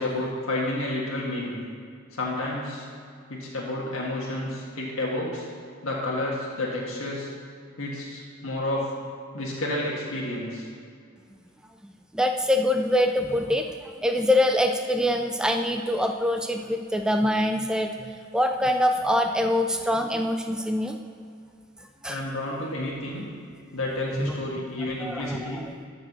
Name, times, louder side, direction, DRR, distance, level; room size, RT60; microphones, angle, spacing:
voice 1, 0.0-1.6 2.1-2.8 3.3-5.5 5.8-7.3 7.8-8.9 9.3-10.7 22.1-23.2 23.7-25.6, left 1 dB, 80° left, -4 dB, 1.7 m, -30 dB
voice 2, 11.8-21.0 21.8-22.2 24.2-24.4 25.0-25.7, left 1 dB, 5° right, 5 dB, 0.3 m, -25 dB
13.5 x 4.9 x 6.1 m, 2.2 s
head